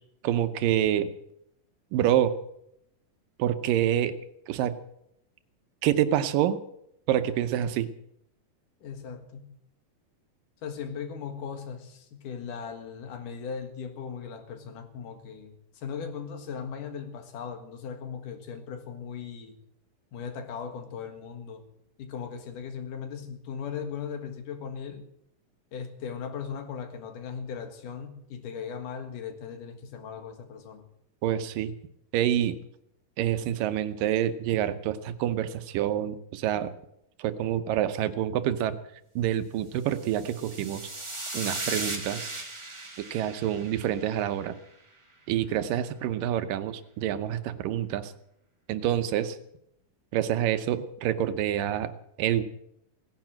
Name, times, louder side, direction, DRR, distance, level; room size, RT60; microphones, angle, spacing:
voice 1, 0.2-1.1 1.9-2.4 3.4-4.2 4.5-4.8 5.8-6.6 7.1-7.9 31.2-31.7 32.1-32.6 33.2-36.7 37.2-38.8 39.2-40.8 41.3-42.3 43.0-44.6 45.3-48.1 48.7-49.4 50.1-51.9 52.2-52.4, right 11 dB, 80° right, 11 dB, 2.6 m, -27 dB
voice 2, 8.8-9.5 10.6-19.6 20.1-21.6 22.0-25.1 25.7-30.8, left 6 dB, 70° left, 7 dB, 3.2 m, -38 dB
sound 1, 39.9-44.4, right 2 dB, 30° right, 0.5 m, -37 dB
17.5 x 10.5 x 7.5 m, 0.77 s
omnidirectional pair, 3.9 m